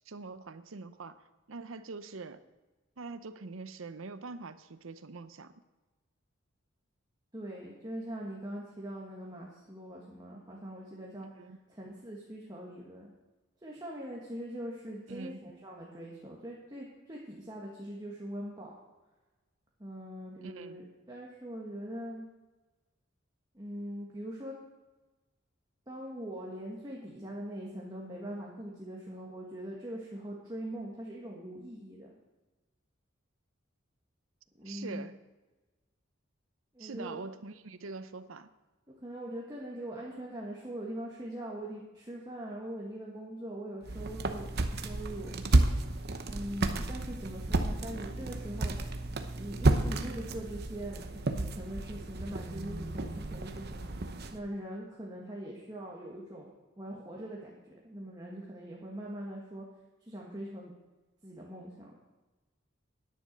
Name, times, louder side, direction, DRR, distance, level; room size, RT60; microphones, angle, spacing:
voice 1, 0.1-1.2 1.5-2.4 3.0-5.5 11.4-11.6 15.1-15.4 20.4-20.8 34.6-35.2 36.8-38.5, right 3 dB, 90° right, 12 dB, 0.7 m, -44 dB
voice 2, 7.3-13.1 13.6-18.7 19.8-22.3 23.5-24.5 25.9-32.1 34.5-35.0 36.7-37.2 39.0-45.3 46.3-48.8 49.4-53.9 54.3-57.5 57.8-59.6 60.0-60.7 61.2-61.9, right 1 dB, 20° right, -3 dB, 1.6 m, -42 dB
sound 1, 43.8-54.4, right 2 dB, 55° right, 0.9 m, -32 dB
10.5 x 9.8 x 5.2 m, 1.2 s
head